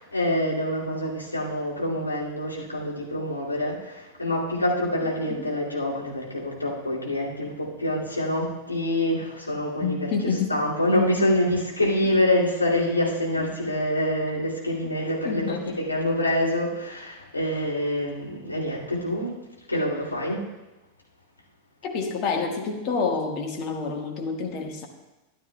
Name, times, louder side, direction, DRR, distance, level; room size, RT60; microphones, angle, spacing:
voice 1, 0.0-10.1 10.5-19.3 19.7-20.4, left 1 dB, 80° left, -5 dB, 2.4 m, -26 dB
voice 2, 9.8-10.6 13.4-13.5 15.2-15.7 21.8-24.9, left 5 dB, 40° left, 3 dB, 1.5 m, -28 dB
13.5 x 11.0 x 2.3 m, 1.0 s
figure-of-eight pair, 90°, 0 cm